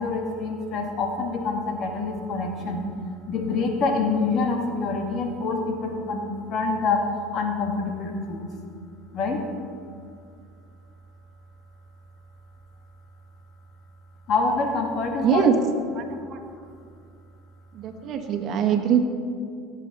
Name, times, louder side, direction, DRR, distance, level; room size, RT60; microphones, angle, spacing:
voice 1, 0.0-2.8 3.3-7.0 7.3-8.4 9.1-9.4 14.3-15.5, left 4 dB, 50° left, 2 dB, 1.9 m, -26 dB
voice 2, 15.2-15.5 15.9-16.4 17.7-19.0, right 8 dB, 50° right, 5 dB, 1.5 m, -23 dB
17.5 x 7.5 x 4.2 m, 2.3 s
supercardioid pair, 95°, 0 cm